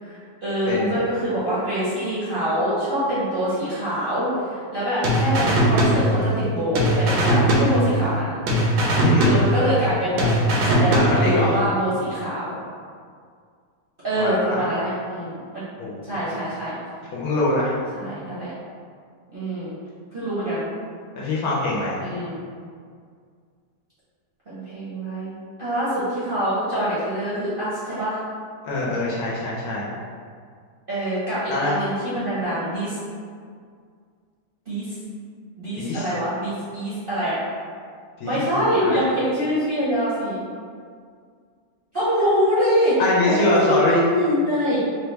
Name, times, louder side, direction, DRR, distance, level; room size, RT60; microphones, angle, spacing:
voice 1, 0.0-8.3 9.2-10.3 10.6-12.5 14.0-15.6 16.0-16.7 17.9-18.5 19.3-19.7 20.1-20.6 22.0-22.4 24.5-28.2 30.9-33.0 34.7-34.8 35.6-37.4 38.2-40.4 41.9-42.9 43.3-44.8, equal, 45° right, -12 dB, 0.8 m, -24 dB
sound 1, 5.0-6.5 6.8-8.2 8.5-9.9 10.2-11.5, right 1 dB, 75° right, 1.2 m, -20 dB
voice 2, 11.0-11.6 14.2-14.7 15.8-16.0 17.1-17.8 21.2-22.0 28.6-29.9 31.5-31.7 35.8-36.1 38.2-39.0 43.0-44.0, left 1 dB, 70° left, -6 dB, 1.0 m, -23 dB
3.2 x 2.2 x 3.1 m, 2.1 s
omnidirectional pair, 1.8 m